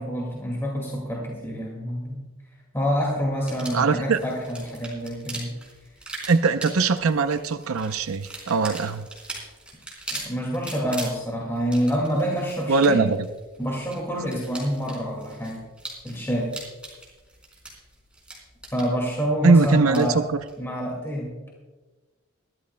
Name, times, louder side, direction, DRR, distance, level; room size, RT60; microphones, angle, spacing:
voice 1, 0.0-2.2 2.7-5.5 10.1-13.1 13.6-15.6 16.0-16.5 18.7-20.2 20.6-21.4, equal, 10° left, -2 dB, 2.0 m, -27 dB
sound 1, 3.4-20.6, right 2 dB, 5° right, 3.6 m, -41 dB
voice 2, 3.7-4.2 6.3-9.1 12.7-13.2 19.4-20.4, right 4 dB, 85° right, 10 dB, 0.6 m, -21 dB
22.5 x 13.0 x 2.2 m, 1.2 s
head